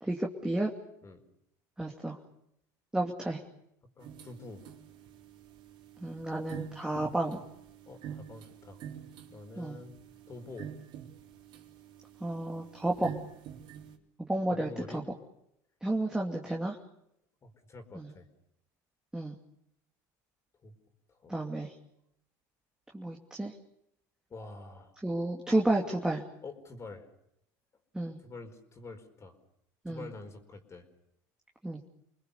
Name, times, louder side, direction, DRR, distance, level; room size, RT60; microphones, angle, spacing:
voice 1, 0.0-0.7 1.8-2.2 2.9-3.4 6.0-7.4 9.6-9.8 12.2-13.1 14.2-15.0 15.8-16.8 17.9-18.1 19.1-19.3 21.3-21.7 22.9-23.5 25.0-26.2 27.9-28.2 29.8-30.1 31.6-31.9, right 1 dB, 5° right, -1 dB, 2.7 m, -31 dB
voice 2, 4.0-4.6 7.8-8.8 9.3-9.9 10.3-10.7 14.5-15.0 17.4-18.3 20.6-20.7 21.1-21.4 24.3-24.9 26.4-27.1 28.2-29.4 29.9-30.8, left 3 dB, 30° left, 7 dB, 4.7 m, -47 dB
sound 1, 4.0-14.0, right 9 dB, 55° right, 3.8 m, -47 dB
29.5 x 20.5 x 7.0 m, 0.78 s
supercardioid pair, 100°, 10 cm